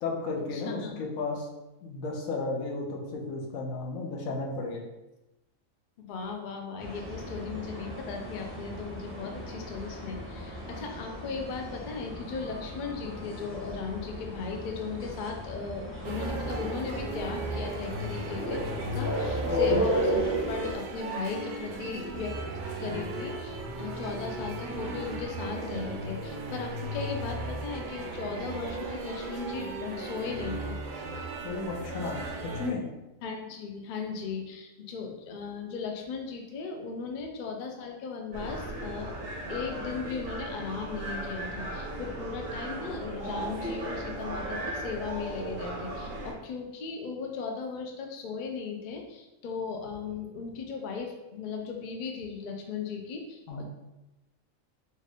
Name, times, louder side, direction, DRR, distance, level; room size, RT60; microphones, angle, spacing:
voice 1, 0.0-1.5 1.8-4.8 19.5-19.8 31.4-32.2 32.5-32.8 53.5-53.6, left 3 dB, 85° left, -1 dB, 1.2 m, -33 dB
voice 2, 0.5-1.0 6.0-18.6 18.9-22.4 22.8-30.8 33.2-39.1 39.5-53.6, left 5 dB, 55° left, 2 dB, 0.5 m, -37 dB
sound 1, 6.8-20.7, equal, 15° right, 0.6 m, -34 dB
sound 2, 16.0-32.7, right 2 dB, 65° right, 0.5 m, -36 dB
sound 3, 38.3-46.3, right 1 dB, 80° right, 1.4 m, -36 dB
4.3 x 2.4 x 3.5 m, 1.0 s
omnidirectional pair, 1.4 m